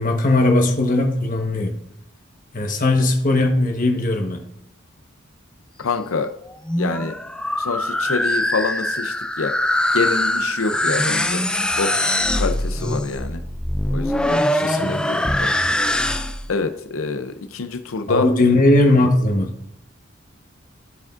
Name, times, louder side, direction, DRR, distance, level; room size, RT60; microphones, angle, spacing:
voice 1, 0.0-1.8 2.5-4.4 14.6-15.2 18.1-19.5, left 2 dB, 40° left, 1.2 m, -18 dB
voice 2, 5.8-6.3 6.8-7.1 7.6-9.5 9.9-11.4 11.8-13.4 13.9-15.5 16.5-18.3, left 4 dB, 90° left, 0.6 m, -26 dB
sound 1, 6.5-16.5, left 1 dB, 5° left, 0.3 m, -22 dB
14.0 x 5.0 x 2.5 m
head